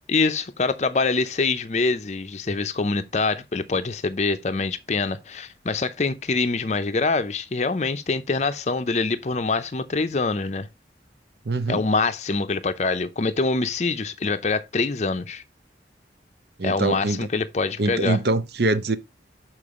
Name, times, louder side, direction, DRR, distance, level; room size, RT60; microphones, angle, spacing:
voice 1, 0.1-10.7 11.7-15.4 16.6-18.2, left 3 dB, 40° left, 0.6 m, -25 dB
voice 2, 11.4-11.8 16.6-17.3 17.8-19.0, right 2 dB, 65° right, 0.7 m, -24 dB
6.9 x 4.6 x 3.6 m
head